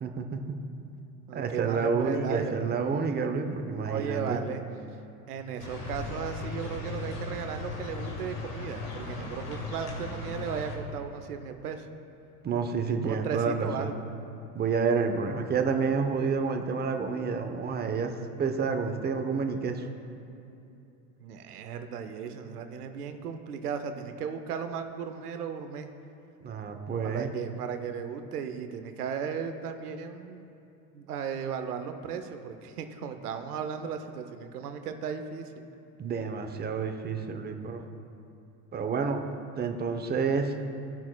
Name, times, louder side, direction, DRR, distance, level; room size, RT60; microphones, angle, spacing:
voice 1, 0.0-0.6 1.3-4.4 12.4-13.9 14.5-18.1 18.4-19.9 26.4-27.3 36.0-37.8 38.7-39.2 39.6-40.5, right 5 dB, 20° right, 5 dB, 0.7 m, -29 dB
voice 2, 1.3-2.6 3.9-4.6 5.3-11.9 12.8-14.0 21.2-25.9 27.0-30.5 30.9-35.5, right 7 dB, 90° right, 7 dB, 0.7 m, -36 dB
sound 1, 5.6-10.8, left 3 dB, 85° left, 1.7 m, -37 dB
17.5 x 5.9 x 2.2 m, 2.8 s
hypercardioid pair, 85°, 45 cm